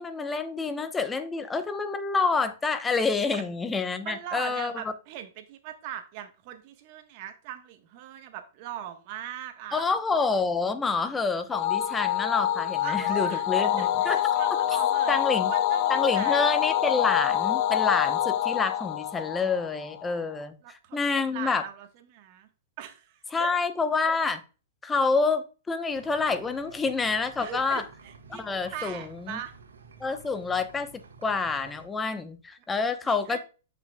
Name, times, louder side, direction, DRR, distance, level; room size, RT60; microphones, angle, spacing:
voice 1, 0.0-4.8 9.7-14.3 15.1-15.5 15.9-21.6 23.3-24.4 24.8-27.8 28.3-29.4 30.0-33.4, left 4 dB, 15° left, 0.8 m, -28 dB
voice 2, 4.0-9.8 12.8-16.4 20.6-21.0 21.3-22.5 22.8-23.5 27.4-28.4 28.7-29.5 33.0-33.4, right 11 dB, 50° right, 1.2 m, -40 dB
sound 1, 11.5-20.1, left 11 dB, 45° left, 0.6 m, -26 dB
sound 2, 25.9-31.9, right 4 dB, 90° right, 1.4 m, -51 dB
7.8 x 5.6 x 2.3 m
hypercardioid pair, 125°, 0 cm